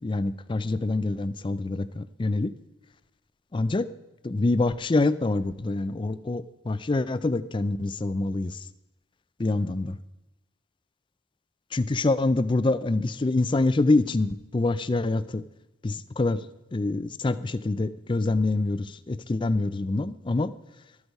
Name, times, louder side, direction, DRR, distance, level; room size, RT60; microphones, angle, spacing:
voice 1, 0.0-2.5 3.5-3.9 4.2-8.6 9.4-10.0 11.7-15.4 15.8-16.4 16.7-20.5, left 2 dB, 25° left, 15 dB, 0.4 m, -26 dB
13.5 x 8.0 x 5.4 m, 1.0 s
head